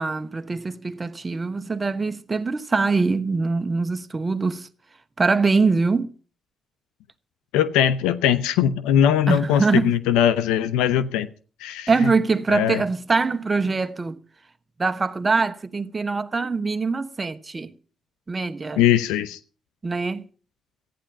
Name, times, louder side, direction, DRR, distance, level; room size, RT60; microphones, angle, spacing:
voice 1, 0.0-4.7 5.2-6.1 9.3-9.9 11.9-14.2 14.8-17.7 18.3-18.8 19.8-20.2, right 4 dB, 30° right, 1.1 m, -23 dB
voice 2, 7.5-11.3 11.6-12.1 12.5-12.8 18.8-19.4, left 10 dB, 90° left, 0.6 m, -20 dB
14.5 x 10.0 x 5.9 m
supercardioid pair, 60°, 0 cm